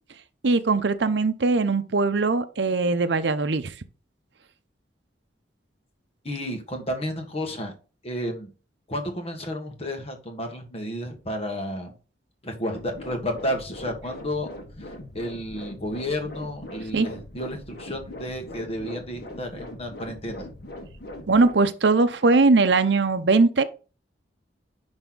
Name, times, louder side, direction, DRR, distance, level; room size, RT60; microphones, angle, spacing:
voice 1, 0.4-3.7 16.9-17.1 21.3-23.6, right 3 dB, 70° right, 0.7 m, -20 dB
voice 2, 6.2-7.7 8.0-8.5 8.9-11.9 12.4-14.5 14.8-20.5, equal, 35° left, 1.6 m, -32 dB
sound 1, 12.7-21.5, left 1 dB, 60° left, 1.8 m, -41 dB
10.5 x 3.5 x 3.9 m
head